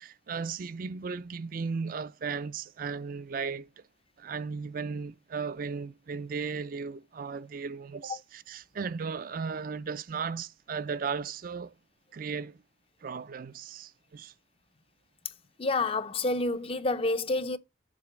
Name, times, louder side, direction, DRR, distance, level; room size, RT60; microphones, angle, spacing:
voice 1, 0.0-3.7 4.2-11.8 12.1-12.6 13.0-14.3, right 5 dB, 50° right, 0.4 m, -36 dB
voice 2, 15.6-17.6, left 2 dB, 30° left, 0.6 m, -28 dB
7.5 x 3.8 x 5.0 m
head